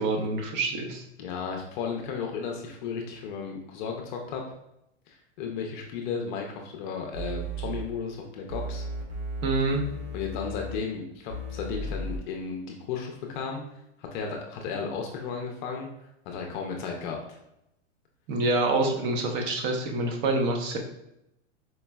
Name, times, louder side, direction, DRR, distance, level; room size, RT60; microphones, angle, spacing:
voice 1, 0.0-1.0 9.4-9.8 18.3-20.8, right 2 dB, 30° right, 3 dB, 0.6 m, -26 dB
voice 2, 1.2-4.4 5.1-8.8 10.1-13.6 14.0-15.9 16.3-17.4, left 5 dB, 40° left, 2 dB, 0.5 m, -34 dB
sound 1, 7.1-7.8 8.5-10.8 11.3-12.2, right 1 dB, 65° right, 1.2 m, -35 dB
4.4 x 3.0 x 2.2 m, 0.81 s
hypercardioid pair, 135°, 36 cm